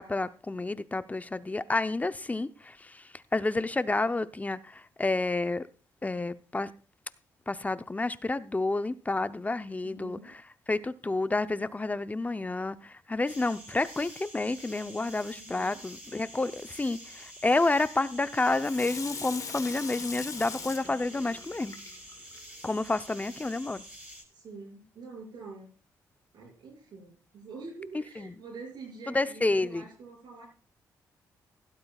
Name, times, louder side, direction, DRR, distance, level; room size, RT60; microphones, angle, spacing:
voice 1, 0.0-5.7 6.0-6.7 7.5-10.4 10.7-21.8 22.6-23.8 28.2-28.4 29.1-29.8, left 2 dB, 20° left, 0.7 m, -30 dB
voice 2, 9.8-10.3 15.4-15.8 24.3-25.7 26.3-30.5, right 4 dB, 70° right, 6.2 m, -46 dB
sound 1, 13.3-24.2, equal, 15° right, 6.2 m, -48 dB
Water tap faucet / Sink (filling or washing), 18.6-22.4 22.9-23.0, left 5 dB, 45° left, 1.3 m, -41 dB
16.5 x 12.0 x 2.4 m
supercardioid pair, 60°, 8 cm